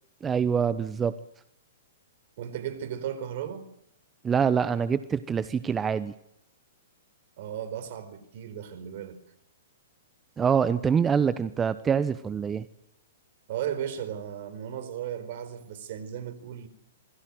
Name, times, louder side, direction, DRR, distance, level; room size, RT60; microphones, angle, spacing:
voice 1, 0.2-1.2 4.2-6.1 10.4-12.6, right 7 dB, 20° right, 1.0 m, -25 dB
voice 2, 2.4-3.7 7.4-9.2 13.5-16.7, right 9 dB, 55° right, 4.6 m, -35 dB
27.0 x 21.0 x 8.0 m
hypercardioid pair, 115°, 0 cm